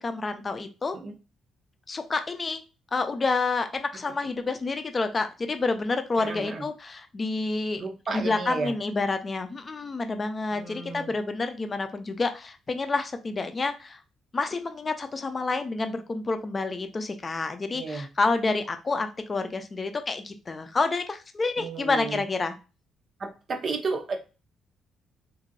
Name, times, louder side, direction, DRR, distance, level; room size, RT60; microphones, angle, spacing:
voice 1, 0.0-1.0 1.9-2.6 2.9-7.8 8.1-14.0 14.3-22.6, left 3 dB, 30° left, 8 dB, 0.4 m, -29 dB
voice 2, 6.2-6.6 7.8-8.7 10.5-11.1 17.7-18.1 21.6-22.2 23.2-24.2, right 4 dB, 50° right, 5 dB, 0.5 m, -33 dB
2.9 x 2.6 x 2.5 m, 0.31 s
cardioid pair, 90°, 0 cm